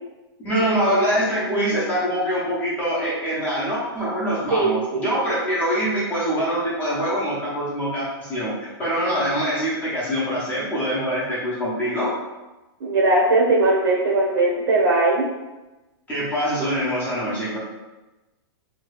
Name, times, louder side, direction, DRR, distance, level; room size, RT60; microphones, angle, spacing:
voice 1, 0.4-12.1 16.1-17.6, equal, 15° left, -9 dB, 0.7 m, -24 dB
voice 2, 4.5-5.1 12.8-15.2, right 2 dB, 60° right, -3 dB, 0.7 m, -19 dB
2.9 x 2.3 x 3.1 m, 1.1 s
hypercardioid pair, 160°, 14 cm